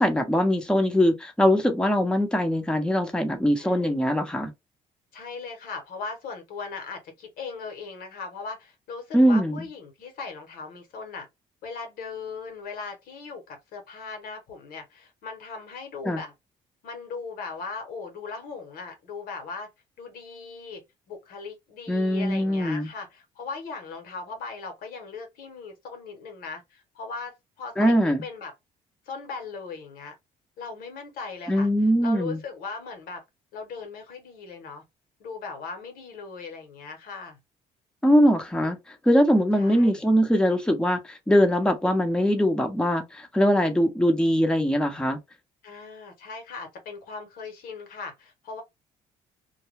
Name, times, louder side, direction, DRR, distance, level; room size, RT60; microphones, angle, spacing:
voice 1, 0.0-4.5 9.1-9.7 16.1-16.2 21.9-22.9 27.8-28.2 31.5-32.4 38.0-45.2, equal, 5° left, 0.8 m, -22 dB
voice 2, 3.6-3.9 5.1-11.3 11.6-16.3 16.8-19.7 20.0-20.8 21.1-28.5 29.1-30.1 30.6-31.7 32.0-33.2 33.5-34.8 35.2-37.4 39.5-40.0 45.6-48.6, left 4 dB, 75° left, 1.0 m, -38 dB
2.3 x 2.2 x 3.1 m
supercardioid pair, 75°, 15 cm